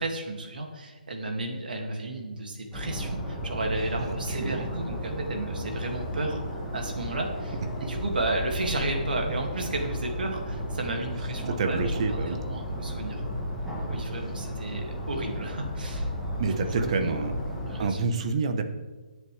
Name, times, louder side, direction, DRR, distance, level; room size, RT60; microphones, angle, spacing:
voice 1, 0.0-13.2 13.9-16.1 16.7-17.1 17.6-18.0, right 2 dB, 75° right, 2 dB, 2.5 m, -33 dB
sound 1, 2.7-17.9, equal, ahead, 1.7 m, -33 dB
voice 2, 4.0-4.7 7.8-7.9 11.5-12.4 16.4-17.3 17.8-18.6, right 4 dB, 40° right, 7 dB, 1.2 m, -28 dB
18.5 x 7.7 x 3.5 m, 1.3 s
hypercardioid pair, 155°, 5 cm